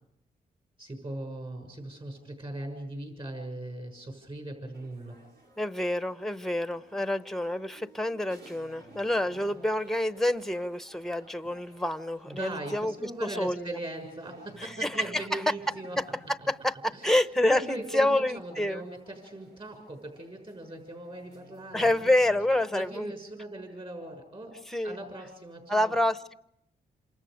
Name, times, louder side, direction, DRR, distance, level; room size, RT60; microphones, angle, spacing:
voice 1, 0.8-5.2 12.3-16.0 16.9-17.2 17.4-22.2 22.7-24.6 24.8-25.9, right 1 dB, 30° right, 6.6 m, -40 dB
sound 1, 4.7-23.0, right 1 dB, 75° right, 6.0 m, -56 dB
voice 2, 5.6-12.9 13.2-13.8 14.6-15.4 16.0-16.1 16.5-18.8 21.7-23.1 24.7-25.0 25.7-26.3, left 1 dB, ahead, 0.8 m, -28 dB
28.5 x 27.0 x 5.2 m
cardioid pair, 105°, 17 cm